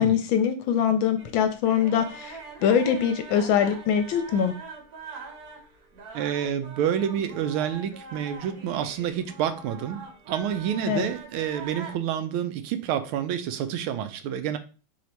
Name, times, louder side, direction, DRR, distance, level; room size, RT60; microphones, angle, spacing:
voice 1, 0.0-4.5 10.9-11.1, left 8 dB, 75° left, 8 dB, 1.3 m, -23 dB
sound 1, 1.2-11.9, right 4 dB, 55° right, 1.2 m, -43 dB
voice 2, 6.1-10.0 10.3-14.6, right 9 dB, 80° right, 9 dB, 1.4 m, -28 dB
4.2 x 2.8 x 4.4 m, 0.35 s
omnidirectional pair, 2.3 m